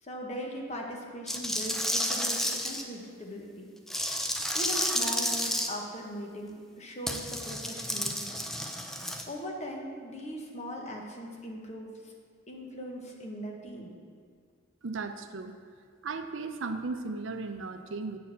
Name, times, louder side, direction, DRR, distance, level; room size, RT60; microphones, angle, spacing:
voice 1, 0.0-3.7 4.5-8.4 8.9-12.1 12.5-13.9, equal, 35° left, 0 dB, 1.1 m, -40 dB
sound 1, 1.3-2.8 3.9-5.7 7.1-9.2, equal, ahead, 0.4 m, -31 dB
voice 2, 14.8-15.5 16.0-18.2, right 3 dB, 65° right, 8 dB, 0.5 m, -36 dB
8.4 x 4.4 x 7.0 m, 2.1 s
head